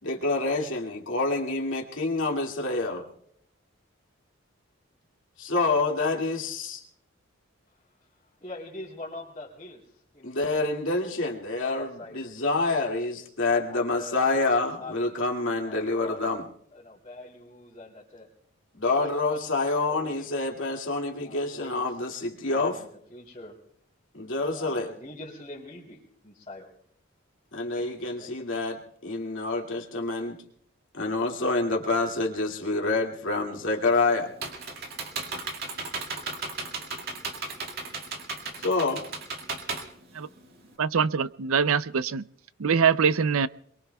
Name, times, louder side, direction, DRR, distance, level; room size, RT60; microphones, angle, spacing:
voice 1, 0.0-3.1 5.4-6.8 10.2-11.9 12.1-16.4 18.8-22.7 24.1-24.9 27.5-30.4 30.9-34.3 38.6-39.0, left 3 dB, 70° left, 0 dB, 2.3 m, -27 dB
voice 2, 7.7-10.8 11.6-12.3 13.7-15.2 15.6-16.3 16.7-18.3 18.9-19.4 19.9-20.3 21.2-22.0 22.5-23.6 24.4-26.7 27.7-27.9 28.2-28.4, left 2 dB, 30° left, -6 dB, 3.4 m, -44 dB
Computer keyboard, 33.9-40.7, right 3 dB, 45° right, 2.1 m, -35 dB
voice 3, 40.8-42.2 42.6-43.5, right 6 dB, 85° right, 15 dB, 0.5 m, -23 dB
26.5 x 22.5 x 2.3 m, 0.68 s
head